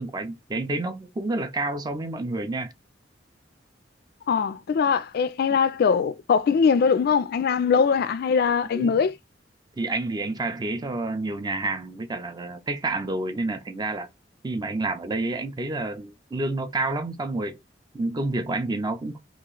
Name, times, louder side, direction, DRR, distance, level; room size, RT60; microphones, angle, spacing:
voice 1, 0.0-2.7 8.7-9.0 9.8-14.1 14.4-17.6 17.9-19.2, right 2 dB, 20° right, 0.4 m, -29 dB
voice 2, 4.3-9.1, left 6 dB, 55° left, 0.3 m, -22 dB
2.9 x 2.4 x 3.8 m
head